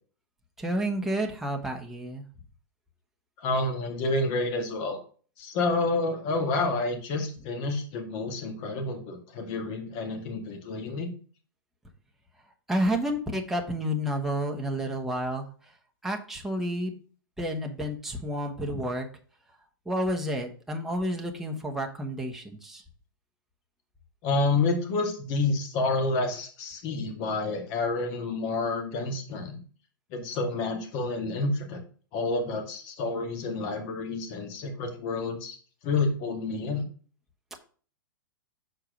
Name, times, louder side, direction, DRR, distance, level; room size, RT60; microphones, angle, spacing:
voice 1, 0.6-2.2 12.7-15.5 16.0-16.9 17.4-19.0 19.9-22.8, equal, 5° right, 1 dB, 1.1 m, -30 dB
voice 2, 3.4-5.0 5.4-11.1 24.2-29.6 30.1-31.8 32.1-35.6 35.8-36.8, left 3 dB, 40° left, 4 dB, 2.2 m, -29 dB
6.6 x 4.7 x 5.1 m, 0.41 s
hypercardioid pair, 130°, 12 cm